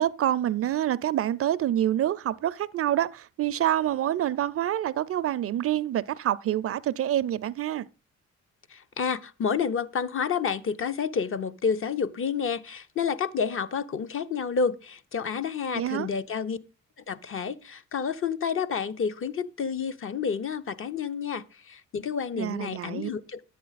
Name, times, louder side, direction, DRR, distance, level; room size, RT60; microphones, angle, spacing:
voice 1, 0.0-7.9 15.7-16.1 22.4-23.1, right 12 dB, 50° right, 0.4 m, -27 dB
voice 2, 8.7-16.6 17.1-23.4, left 6 dB, 45° left, 0.7 m, -29 dB
10.0 x 8.5 x 4.0 m
cardioid pair, 90°, 30 cm